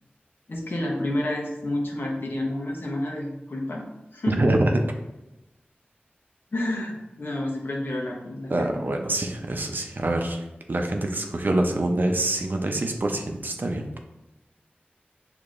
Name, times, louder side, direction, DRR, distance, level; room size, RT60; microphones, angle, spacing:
voice 1, 0.5-3.8 4.1-4.5 6.5-8.8, left 1 dB, 65° left, -1 dB, 1.0 m, -29 dB
voice 2, 4.3-4.8 8.5-14.0, right 1 dB, 55° right, 3 dB, 0.6 m, -25 dB
6.4 x 2.9 x 2.5 m, 0.95 s
wide cardioid pair, 60°, 4 cm